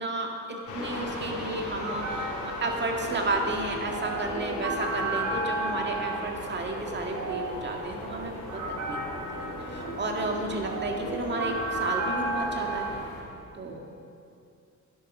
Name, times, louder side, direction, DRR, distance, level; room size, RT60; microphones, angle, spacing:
voice 1, 0.0-8.4 8.8-12.9 13.5-13.9, right 2 dB, 35° right, 1 dB, 2.0 m, -32 dB
sound 1, 0.7-13.2, left 2 dB, 75° left, 3.1 m, -39 dB
sound 2, 0.9-12.9, right 2 dB, 75° right, 3.4 m, -34 dB
11.5 x 11.0 x 5.5 m, 2.5 s
cardioid pair, 90°, 30 cm